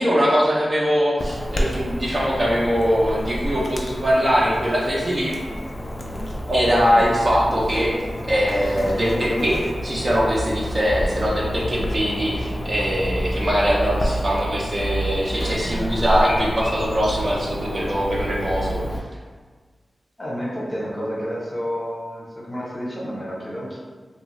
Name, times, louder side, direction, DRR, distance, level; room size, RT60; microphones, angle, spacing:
voice 1, 0.0-5.4 6.5-7.9 8.2-18.8, equal, 40° right, -5 dB, 0.5 m, -21 dB
Chirp tweet / Buzz, 1.2-19.0, equal, 40° left, 0.3 m, -29 dB
voice 2, 20.2-23.8, equal, 15° left, -6 dB, 0.8 m, -30 dB
2.5 x 2.3 x 3.0 m, 1.5 s
wide cardioid pair, 90°, 0 cm